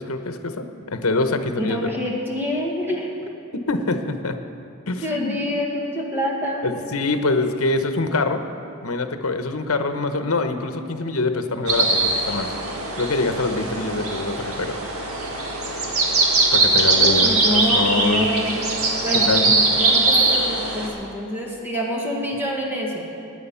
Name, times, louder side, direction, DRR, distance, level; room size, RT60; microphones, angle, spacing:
voice 1, 0.0-1.9 3.5-4.4 4.9-5.4 6.6-8.4 8.8-12.5 13.0-14.7 16.5-18.3 19.1-19.5, left 3 dB, 75° left, 7 dB, 1.0 m, -24 dB
voice 2, 1.6-3.1 5.0-6.7 17.0-18.6 19.0-23.1, left 1 dB, 10° right, -2 dB, 1.5 m, -26 dB
sound 1, 11.7-20.9, right 3 dB, 85° right, 2.1 m, -21 dB
17.0 x 10.0 x 5.7 m, 2.6 s
head